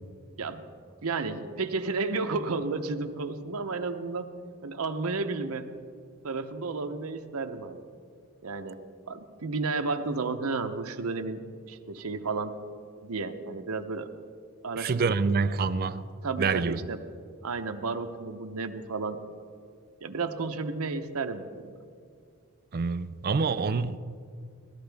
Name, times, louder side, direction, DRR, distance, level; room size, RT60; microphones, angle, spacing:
voice 1, 1.0-4.3 4.6-5.7 6.2-7.9 8.4-8.8 9.1-12.5 13.0-14.1 14.6-15.1 16.2-17.0 17.4-19.2 20.0-21.8, right 3 dB, 80° right, 0.8 m, -32 dB
voice 2, 14.8-16.0 16.4-16.8 22.7-24.0, right 4 dB, 45° right, 0.4 m, -26 dB
18.0 x 13.0 x 3.4 m
head